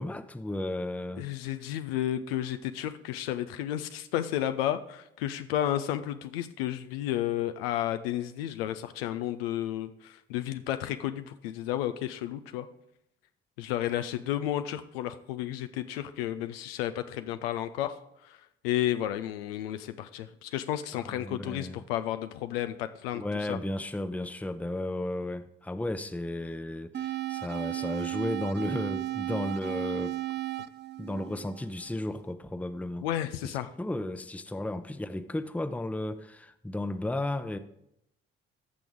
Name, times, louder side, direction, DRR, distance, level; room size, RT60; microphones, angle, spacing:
voice 1, 0.0-1.3 21.0-21.8 23.1-30.2 31.0-33.1 33.8-37.6, left 1 dB, 5° left, 0.7 m, -34 dB
voice 2, 1.2-12.7 13.6-23.6 33.0-33.7, left 12 dB, 90° left, 0.5 m, -32 dB
sound 1, 26.9-32.0, right 14 dB, 35° right, 0.5 m, -34 dB
14.5 x 6.1 x 3.6 m
hypercardioid pair, 45°, 29 cm